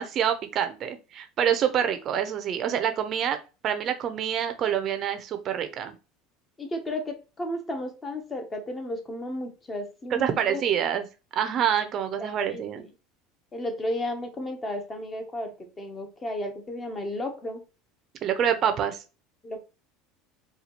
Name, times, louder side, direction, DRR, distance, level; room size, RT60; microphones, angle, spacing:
voice 1, 0.0-3.4 3.6-5.9 10.1-11.1 11.3-12.8 18.2-19.0, right 9 dB, 40° right, 8 dB, 0.5 m, -26 dB
voice 2, 6.6-10.8 12.2-12.7 13.5-17.6 19.4-19.6, left 1 dB, 20° left, 5 dB, 0.7 m, -33 dB
4.1 x 2.3 x 2.9 m, 0.31 s
supercardioid pair, 125°, 0 cm